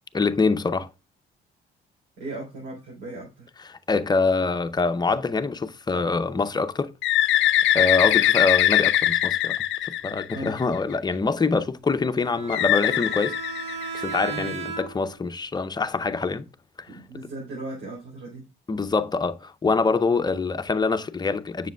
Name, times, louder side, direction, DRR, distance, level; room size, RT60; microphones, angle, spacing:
voice 1, 0.1-0.9 3.6-6.9 7.7-9.6 9.8-13.3 13.9-16.5 16.8-17.0 18.7-21.7, left 4 dB, 20° left, 0.6 m, -25 dB
voice 2, 2.2-3.5 10.3-10.6 14.3-14.5 16.9-18.4, right 2 dB, 90° right, 3.8 m, -37 dB
Bird, 7.0-10.8 12.5-14.3, left 13 dB, 75° left, 0.5 m, -22 dB
Bowed string instrument, 12.2-15.2, right 5 dB, 60° right, 1.8 m, -35 dB
7.2 x 6.5 x 2.3 m
cardioid pair, 90°, 20 cm